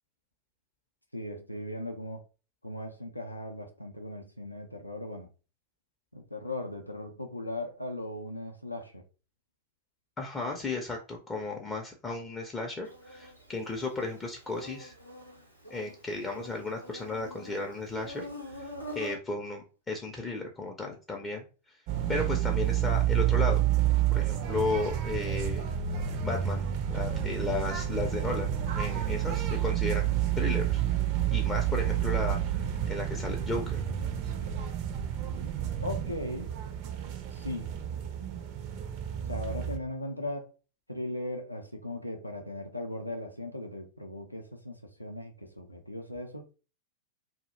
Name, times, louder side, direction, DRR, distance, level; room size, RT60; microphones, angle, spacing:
voice 1, 1.1-2.2 2.6-5.3 6.1-9.0 35.8-36.5 37.3-37.8 39.3-40.5 40.9-46.4, left 1 dB, 85° left, 0.3 m, -38 dB
voice 2, 10.2-14.9 15.7-21.4 22.1-23.6 24.1-25.6 26.2-28.5 28.8-30.1 30.4-30.8 31.3-33.8, left 3 dB, 15° left, 0.4 m, -34 dB
Insect, 12.8-19.1, left 1 dB, 90° right, 0.7 m, -45 dB
sound 1, 21.9-39.8, right 11 dB, 45° right, 0.4 m, -29 dB
2.2 x 2.0 x 3.0 m
figure-of-eight pair, 90°, 0 cm